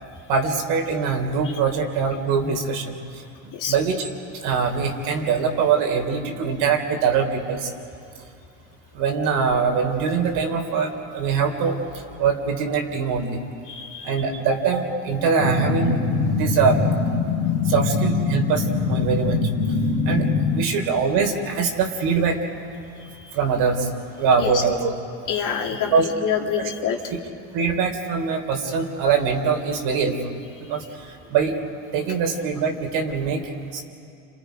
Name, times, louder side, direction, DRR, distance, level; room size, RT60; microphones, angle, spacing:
voice 1, 0.3-3.2 3.7-4.1 4.4-7.7 8.9-11.8 12.2-13.4 14.0-16.8 17.7-19.4 20.1-20.3 20.5-22.4 23.3-23.9 24.2-24.9 25.9-26.1 26.6-26.7 27.5-30.2 30.7-30.8 31.3-31.6 31.9-33.8, right 5 dB, 65° right, 3 dB, 3.6 m, -23 dB
voice 2, 13.7-14.1 23.2-23.3 24.4-24.5 25.3-27.0, left 8 dB, 50° left, 1 dB, 2.7 m, -27 dB
sound 1, 15.4-20.6, left 4 dB, 80° left, 2.8 m, -23 dB
30.0 x 27.0 x 5.2 m, 2.5 s
supercardioid pair, 110°, 41 cm